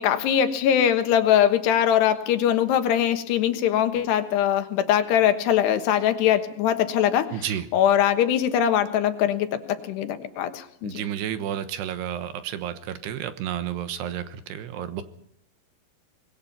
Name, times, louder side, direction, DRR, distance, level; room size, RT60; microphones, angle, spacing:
voice 1, 0.0-7.5 7.7-11.1, left 10 dB, 80° left, 8 dB, 3.4 m, -22 dB
voice 2, 7.3-7.6 10.8-15.0, right 10 dB, 80° right, 10 dB, 3.2 m, -31 dB
25.0 x 21.0 x 5.8 m, 0.66 s
omnidirectional pair, 4.9 m